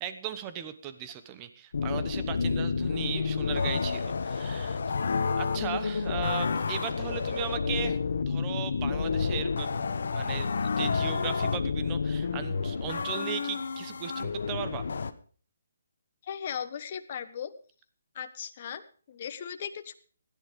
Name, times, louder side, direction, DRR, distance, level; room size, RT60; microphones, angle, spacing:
voice 1, 0.0-4.8 5.3-9.8 10.1-14.8, right 9 dB, 20° right, 10 dB, 1.1 m, -37 dB
sound 1, 1.7-15.1, left 5 dB, 65° left, 1.2 m, -30 dB
voice 2, 16.2-17.5 18.1-19.9, left 8 dB, 35° left, 8 dB, 1.1 m, -37 dB
16.0 x 10.5 x 5.1 m, 0.41 s
hypercardioid pair, 165°, 0 cm